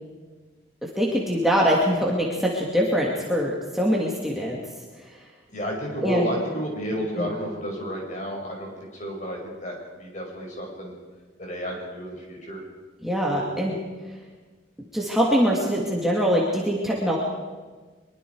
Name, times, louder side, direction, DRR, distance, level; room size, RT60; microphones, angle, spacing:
voice 1, 0.8-4.6 6.0-6.3 7.1-7.3 13.0-13.8 14.9-17.2, equal, ahead, -4 dB, 2.4 m, -23 dB
voice 2, 5.5-10.9 11.4-12.6 13.3-13.4, equal, 40° left, 0 dB, 5.9 m, -31 dB
23.5 x 23.0 x 4.8 m, 1.4 s
head